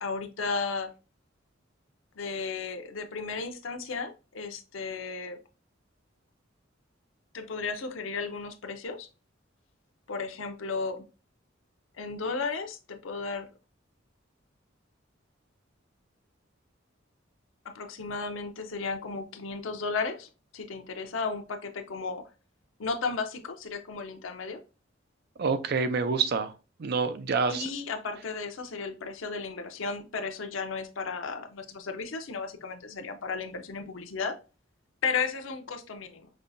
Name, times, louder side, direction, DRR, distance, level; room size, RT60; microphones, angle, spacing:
voice 1, 0.0-0.9 2.2-5.4 7.3-9.1 10.1-11.1 12.0-13.5 17.6-22.3 22.8-24.6 27.5-34.4 35.0-36.3, left 4 dB, 85° left, 7 dB, 0.6 m, -34 dB
voice 2, 25.4-26.5 26.8-27.7, right 5 dB, 55° right, 10 dB, 0.5 m, -27 dB
5.4 x 2.3 x 2.6 m, 0.32 s
head